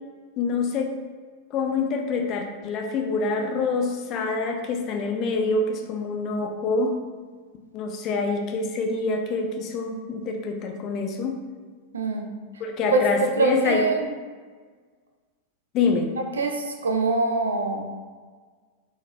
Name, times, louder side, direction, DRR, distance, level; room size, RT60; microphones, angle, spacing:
voice 1, 0.4-1.0 1.5-7.0 7.7-11.4 12.6-13.8 15.7-16.1, left 4 dB, 35° left, 3 dB, 0.4 m, -26 dB
voice 2, 11.9-12.3 12.9-13.0 13.4-14.1 16.3-17.8, right 3 dB, 70° right, 3 dB, 0.4 m, -23 dB
3.8 x 2.6 x 2.3 m, 1.5 s
figure-of-eight pair, 90°, 0 cm